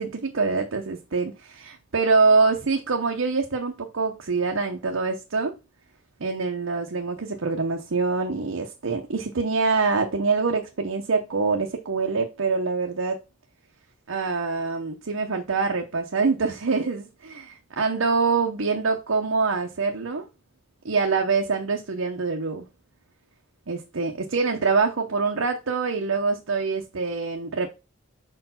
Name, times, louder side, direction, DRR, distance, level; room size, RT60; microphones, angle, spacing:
voice 1, 0.0-5.6 6.2-13.2 14.1-20.3 20.8-22.7 23.7-27.7, right 4 dB, 65° right, 0.8 m, -25 dB
4.8 x 4.5 x 5.6 m
head